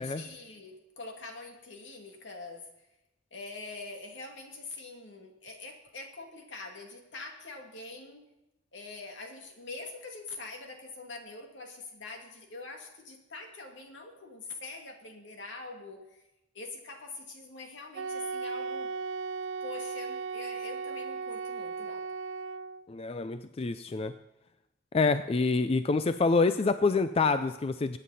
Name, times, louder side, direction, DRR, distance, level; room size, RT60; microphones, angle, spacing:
voice 1, 0.0-2.7 3.3-8.2 8.7-16.2 16.5-18.9 19.6-22.1, left 3 dB, 75° left, 2 dB, 2.4 m, -44 dB
Wind instrument woodwind instrument, 17.9-22.8, right 5 dB, 75° right, 0.4 m, -36 dB
voice 2, 22.9-24.1 24.9-28.0, left 4 dB, 30° left, 11 dB, 0.4 m, -27 dB
22.0 x 9.2 x 4.2 m, 0.92 s
head